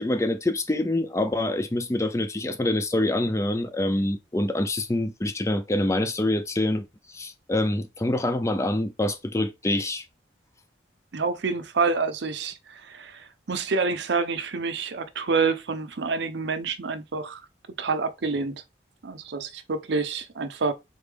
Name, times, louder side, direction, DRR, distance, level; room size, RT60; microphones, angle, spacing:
voice 1, 0.0-6.8 7.1-10.0, left 1 dB, 15° left, 0.4 m, -26 dB
voice 2, 11.1-17.4 17.7-18.6 19.0-20.7, right 4 dB, 70° right, 0.6 m, -28 dB
3.9 x 3.3 x 3.4 m
head